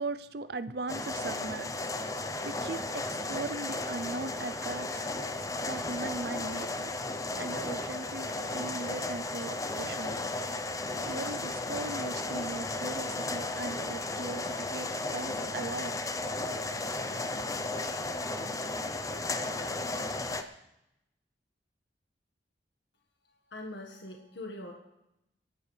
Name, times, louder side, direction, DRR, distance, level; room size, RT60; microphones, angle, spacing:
voice 1, 0.0-1.9 2.4-5.1 5.6-6.9 7.4-10.2 11.0-16.0, right 3 dB, 60° right, 13 dB, 0.6 m, -39 dB
sound 1, 0.9-20.4, left 2 dB, 20° left, 0.7 m, -34 dB
voice 2, 23.5-24.7, left 1 dB, 75° left, 1 dB, 1.6 m, -42 dB
27.5 x 12.0 x 3.4 m, 0.88 s
head